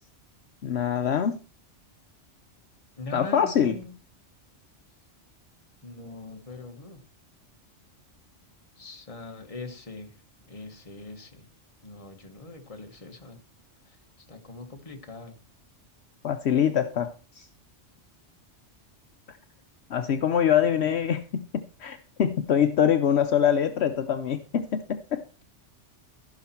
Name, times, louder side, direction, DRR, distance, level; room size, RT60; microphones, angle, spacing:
voice 1, 0.6-1.4 3.1-3.8 16.2-17.5 19.9-21.5 21.8-25.2, left 8 dB, 65° left, 8 dB, 1.0 m, -24 dB
voice 2, 3.0-3.9 5.8-7.0 8.8-10.1 10.5-11.4 11.8-13.4 14.3-15.4, left 3 dB, 30° left, 4 dB, 1.4 m, -41 dB
15.0 x 5.8 x 4.4 m, 0.36 s
omnidirectional pair, 1.2 m